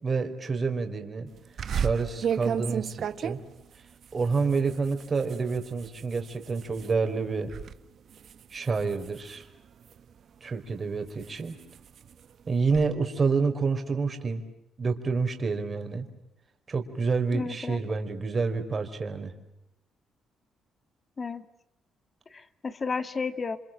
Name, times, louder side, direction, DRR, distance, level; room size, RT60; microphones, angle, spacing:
voice 1, 0.0-1.3 1.7-3.4 4.1-7.5 8.5-9.5 10.4-11.5 12.5-14.4 14.8-16.1 16.7-19.3, right 4 dB, 35° right, 5 dB, 4.5 m, -28 dB
sound 1, 1.6-6.9 7.3-7.7 8.1-10.1 10.7-12.9, right 8 dB, 60° right, 1.3 m, -34 dB
voice 2, 17.3-17.8 21.2-21.4 22.3-23.6, left 4 dB, 35° left, 10 dB, 1.9 m, -32 dB
29.0 x 26.5 x 7.6 m, 0.85 s
cardioid pair, 90°, 0 cm